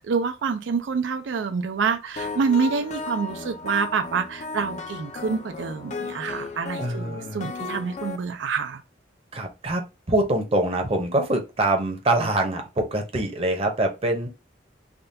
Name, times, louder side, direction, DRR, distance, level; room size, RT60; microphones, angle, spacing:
voice 1, 0.0-8.8, right 5 dB, 85° right, 0.4 m, -27 dB
sound 1, 2.2-8.2, left 3 dB, 40° left, 0.4 m, -35 dB
voice 2, 6.8-7.5 9.3-14.3, right 1 dB, 35° right, 0.7 m, -24 dB
3.5 x 2.3 x 2.6 m
head